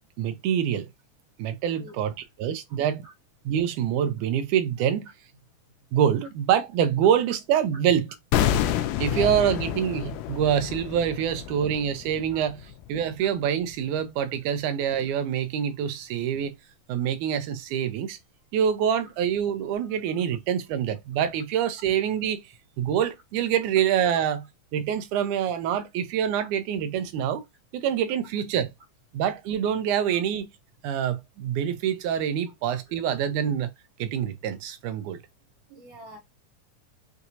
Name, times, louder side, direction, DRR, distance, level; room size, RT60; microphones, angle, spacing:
voice 1, 0.2-0.9 1.4-2.1 2.4-3.1 3.5-5.1 5.9-8.1 9.0-16.5 16.9-18.2 18.5-22.4 22.8-24.5 24.7-27.4 27.7-28.7 29.1-30.5 30.8-33.7 34.0-35.2, right 9 dB, 80° right, 2.0 m, -26 dB
sound 1, 8.3-13.3 13.6-13.8, left 11 dB, 85° left, 2.1 m, -29 dB
voice 2, 35.7-36.2, right 1 dB, 65° right, 1.6 m, -43 dB
5.8 x 2.7 x 2.7 m
omnidirectional pair, 3.6 m